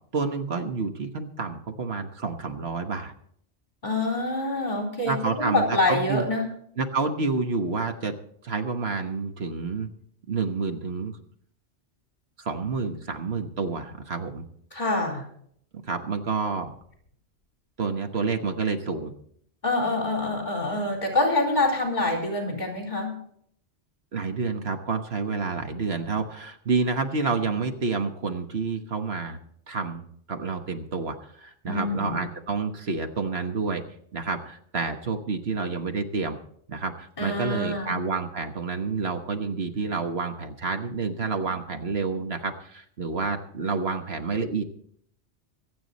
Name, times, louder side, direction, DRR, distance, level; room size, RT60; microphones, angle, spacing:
voice 1, 0.1-3.1 5.0-6.2 6.8-8.1 8.4-9.9 10.3-11.2 12.4-14.4 15.9-16.7 17.8-19.1 24.1-29.4 29.7-33.8 34.1-36.4 36.7-44.6, right 4 dB, 65° right, 6 dB, 1.5 m, -29 dB
voice 2, 3.8-6.5 14.7-15.3 19.6-23.2 31.7-32.2 37.2-38.0, left 2 dB, 40° left, 1 dB, 4.2 m, -26 dB
25.0 x 8.6 x 4.1 m, 0.65 s
omnidirectional pair, 1.1 m